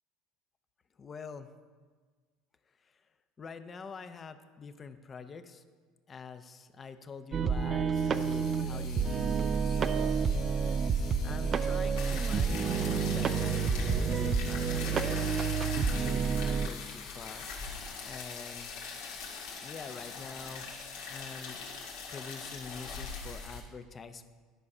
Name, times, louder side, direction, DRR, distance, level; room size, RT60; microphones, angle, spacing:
voice 1, 1.0-1.5 2.8-3.1 3.4-5.6 6.1-10.3 11.2-15.3 15.9-17.5 18.0-18.7 19.6-20.7 21.1-21.6 22.1-24.3, left 5 dB, 30° left, 9 dB, 0.6 m, -45 dB
sound 1, 7.3-16.7, right 6 dB, 35° right, 0.4 m, -29 dB
sound 2, 7.9-20.9, left 7 dB, 65° left, 1.3 m, -51 dB
sound 3, 12.0-23.6, left 4 dB, 85° left, 1.9 m, -41 dB
11.5 x 4.8 x 5.4 m, 1.5 s
supercardioid pair, 105°, 0 cm